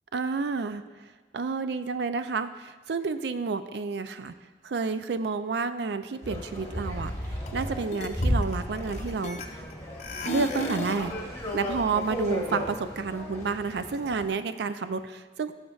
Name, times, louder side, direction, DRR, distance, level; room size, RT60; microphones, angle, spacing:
voice 1, 0.1-0.8 1.3-4.3 4.6-9.7 10.2-11.2 11.5-15.5, right 4 dB, 70° right, 11 dB, 0.4 m, -30 dB
sound 1, 6.2-14.3, equal, 15° left, 1.2 m, -34 dB
sound 2, 7.5-7.6 7.9-9.7 10.0-11.1, left 2 dB, 40° left, 0.6 m, -35 dB
15.0 x 6.4 x 2.4 m, 1.3 s
head